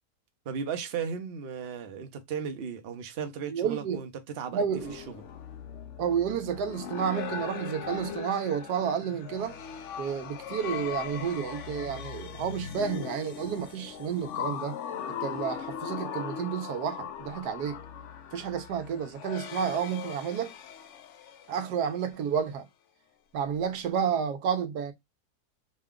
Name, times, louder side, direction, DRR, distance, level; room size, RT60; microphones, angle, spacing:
voice 1, 0.4-4.1 4.3-5.2, right 6 dB, 50° right, 0.8 m, -36 dB
voice 2, 3.5-4.0 4.5-5.0 6.0-9.6 10.0-14.8 15.1-17.8 18.3-20.5 21.5-22.7 23.3-24.9, right 7 dB, 80° right, 1.2 m, -31 dB
sound 1, 4.8-22.1, left 8 dB, 65° left, 0.8 m, -39 dB
5.0 x 2.2 x 3.6 m
omnidirectional pair, 1.7 m